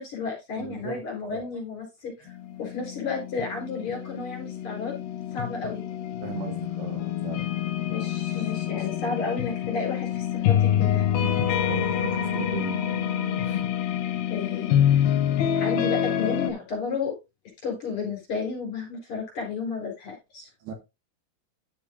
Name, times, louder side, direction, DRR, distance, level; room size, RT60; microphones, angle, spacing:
voice 1, 0.0-2.3 2.6-5.0 5.3-5.8 7.9-11.1 14.3-15.1 15.5-17.1 17.6-20.5, left 4 dB, 30° left, 4.3 m, -32 dB
voice 2, 0.6-1.0 1.3-1.6 6.2-7.5 8.3-8.5 8.8-8.9 11.2-12.8 13.4-13.6 20.6-20.7, right 8 dB, 75° right, 3.4 m, -38 dB
sound 1, 2.3-16.5, left 10 dB, 70° left, 2.7 m, -26 dB
11.5 x 7.0 x 2.4 m
omnidirectional pair, 5.3 m